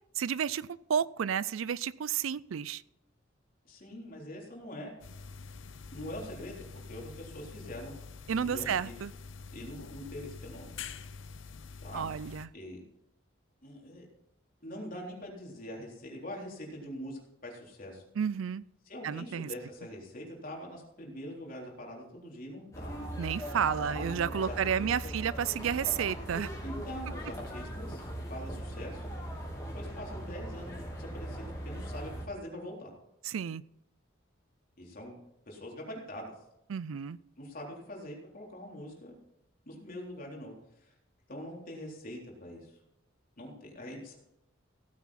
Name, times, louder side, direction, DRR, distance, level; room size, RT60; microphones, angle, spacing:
voice 1, 0.2-2.8 8.3-9.1 11.9-12.5 18.2-18.6 19.0-19.5 23.2-26.5 33.2-33.6 36.7-37.2, right 8 dB, 85° right, 0.4 m, -31 dB
voice 2, 3.7-4.9 5.9-8.0 8.3-9.0 9.5-10.8 11.8-12.1 12.5-12.8 13.6-14.1 14.6-18.0 18.9-22.9 24.4-25.1 26.6-29.1 29.7-32.9 34.8-35.2 35.5-36.3 37.4-39.1 39.7-40.5 40.8-40.9 41.3-42.7 43.4-44.1, left 1 dB, 45° left, 3.7 m, -43 dB
sound 1, 5.0-12.5, left 5 dB, 70° left, 0.7 m, -46 dB
sound 2, 22.7-32.3, equal, 15° left, 3.5 m, -39 dB
16.5 x 9.5 x 4.2 m
head